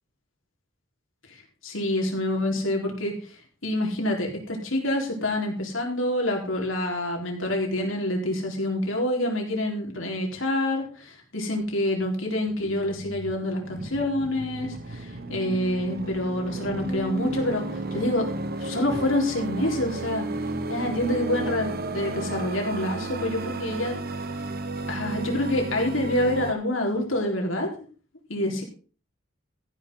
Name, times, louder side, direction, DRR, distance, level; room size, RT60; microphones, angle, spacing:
voice 1, 1.6-3.1 3.6-17.6 17.9-18.3 18.6-20.3 20.7-24.0 24.9-27.7 28.3-28.6, left 1 dB, 75° left, 1 dB, 4.5 m, -27 dB
sound 1, 12.5-26.5, right 2 dB, 50° right, 1.3 m, -33 dB
15.0 x 10.5 x 4.0 m, 0.38 s
head